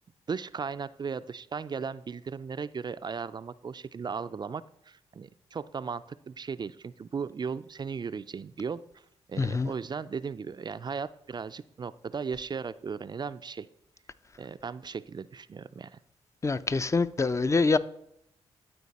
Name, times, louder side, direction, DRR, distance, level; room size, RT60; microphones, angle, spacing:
voice 1, 0.3-9.0 9.3-13.7 14.4-16.0, right 5 dB, 40° right, 0.3 m, -36 dB
voice 2, 9.4-9.7 16.4-17.8, left 3 dB, 25° left, 0.4 m, -25 dB
12.0 x 4.4 x 4.1 m
supercardioid pair, 55°, 12 cm